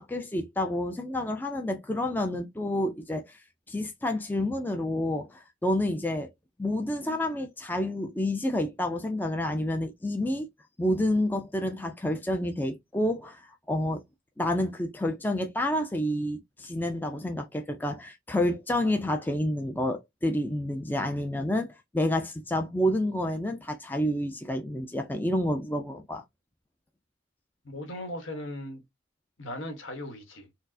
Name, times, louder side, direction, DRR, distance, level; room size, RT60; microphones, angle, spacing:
voice 1, 0.0-3.4 3.7-6.3 6.6-10.5 10.8-14.0 14.4-26.2, left 1 dB, 10° left, 0.3 m, -29 dB
voice 2, 27.6-28.8 29.4-30.5, left 1 dB, 75° left, 1.2 m, -38 dB
4.3 x 2.0 x 2.5 m
head